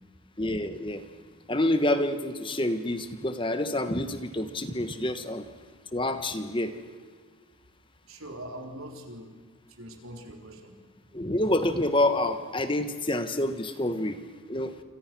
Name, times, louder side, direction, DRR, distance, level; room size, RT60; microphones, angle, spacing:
voice 1, 0.4-1.0 1.5-5.5 5.9-6.7 11.1-14.2 14.5-14.8, left 1 dB, 25° left, 9 dB, 1.3 m, -27 dB
voice 2, 8.0-9.4 9.7-10.7, right 1 dB, 75° right, 3 dB, 4.1 m, -42 dB
28.5 x 26.5 x 6.2 m, 1.5 s
head